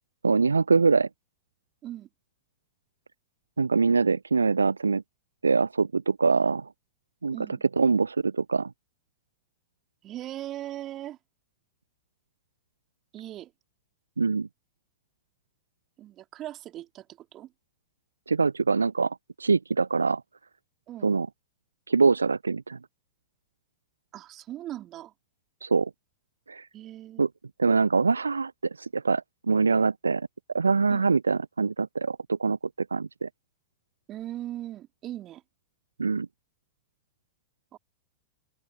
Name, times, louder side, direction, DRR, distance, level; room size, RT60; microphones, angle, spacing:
voice 1, 0.2-1.1 3.6-5.0 5.4-6.7 7.2-7.4 7.8-8.7 14.2-14.5 18.3-20.2 21.0-21.3 21.9-22.8 25.6-25.9 26.5-26.7 27.2-27.3 27.6-28.5 28.8-30.3 30.5-32.6 32.9-33.3 36.0-36.3, right 4 dB, 75° right, 0.5 m, -24 dB
voice 2, 7.3-7.6 10.0-11.2 13.1-13.5 16.0-17.5 20.9-21.1 24.1-25.1 26.7-27.3 30.9-31.1 34.1-35.4 37.7-37.8, right 13 dB, 35° right, 3.4 m, -39 dB
figure-of-eight pair, 90°, 0 cm